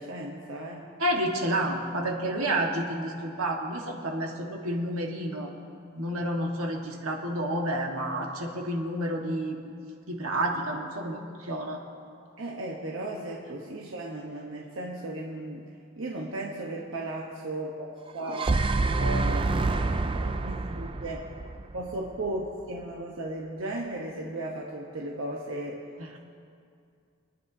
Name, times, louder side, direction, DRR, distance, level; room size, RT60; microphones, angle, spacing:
voice 1, 0.0-0.9 12.4-15.7 16.0-18.5 19.0-19.5 20.3-21.2 21.7-25.9, right 1 dB, 65° right, -2 dB, 1.1 m, -35 dB
voice 2, 1.0-5.5 5.9-9.6 10.1-11.8 26.0-26.2, right 1 dB, 80° right, 0 dB, 1.6 m, -30 dB
sound 1, 18.1-22.3, right 3 dB, 25° right, 0.4 m, -27 dB
26.0 x 9.7 x 2.8 m, 2.4 s
head